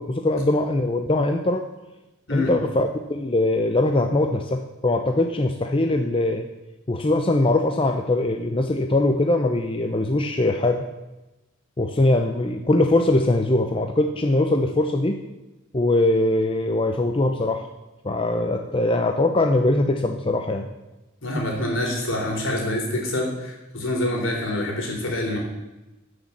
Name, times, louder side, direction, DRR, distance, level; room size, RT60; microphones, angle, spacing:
voice 1, 0.0-1.6 2.3-6.5 6.9-10.9 11.8-15.2 15.7-17.7 18.0-20.7, left 2 dB, 25° left, 5 dB, 0.6 m, -21 dB
voice 2, 21.2-25.4, left 1 dB, 65° left, 0 dB, 3.6 m, -26 dB
13.0 x 6.5 x 7.2 m, 1.0 s
head